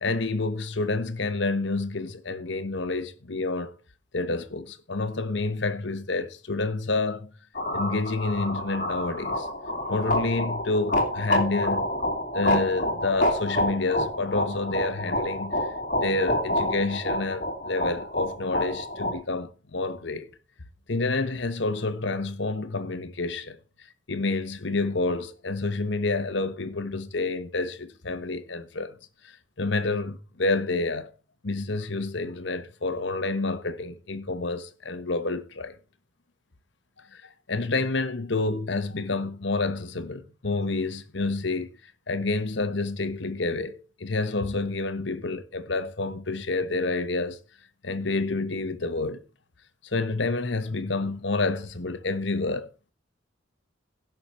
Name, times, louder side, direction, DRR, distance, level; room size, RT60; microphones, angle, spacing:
voice 1, 0.0-3.7 4.1-7.3 7.7-9.5 9.9-11.9 12.3-20.3 20.9-23.6 24.1-29.0 29.2-31.1 31.4-35.7 37.0-37.2 37.5-41.7 42.1-47.4 47.8-49.2 49.8-52.9, left 3 dB, 65° left, 1.1 m, -29 dB
sound 1, 7.5-19.1, left 1 dB, 40° left, 2.5 m, -28 dB
16.0 x 6.0 x 4.3 m
head